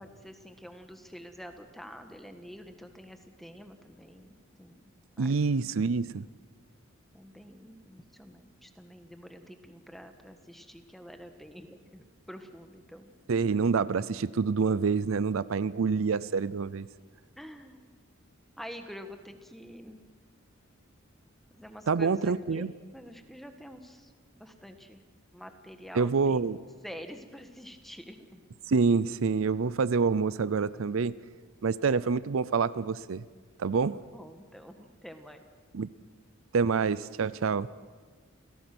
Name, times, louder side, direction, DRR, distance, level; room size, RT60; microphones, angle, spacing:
voice 1, 0.0-5.8 6.0-6.2 7.1-13.6 17.4-17.9 18.6-20.0 21.5-22.7 22.9-25.0 25.3-26.5 26.8-28.5 34.1-35.4 36.1-36.2, equal, ahead, 6 dB, 1.5 m, -47 dB
voice 2, 5.2-6.3 13.3-16.9 21.9-22.7 25.9-26.6 28.7-31.2 31.6-33.2 33.6-34.1 35.7-35.9 36.5-37.7, right 5 dB, 70° right, 17 dB, 0.5 m, -27 dB
29.0 x 17.0 x 6.1 m, 1.5 s
head